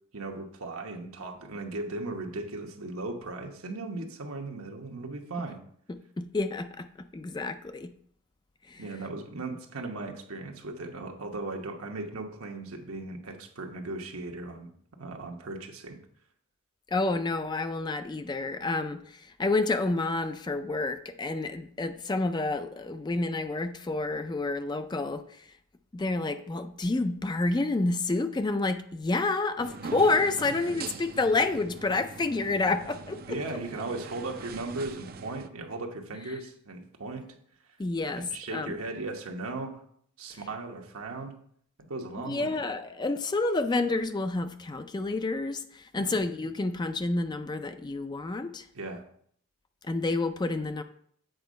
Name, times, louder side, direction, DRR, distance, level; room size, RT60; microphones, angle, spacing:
voice 1, 0.1-5.6 8.8-14.7 15.0-16.0 30.4-30.5 33.3-37.3 38.1-39.8 40.2-41.3 41.9-42.6 45.9-46.2 48.7-49.1, right 2 dB, 75° right, 3 dB, 1.1 m, -37 dB
voice 2, 5.9-7.9 8.7-8.8 16.9-25.5 25.9-33.4 37.8-38.8 42.3-48.7 49.8-50.8, left 3 dB, 20° left, 9 dB, 0.3 m, -29 dB
sound 1, 29.6-35.5, right 4 dB, 45° right, 0.4 m, -42 dB
7.9 x 4.5 x 5.1 m, 0.63 s
head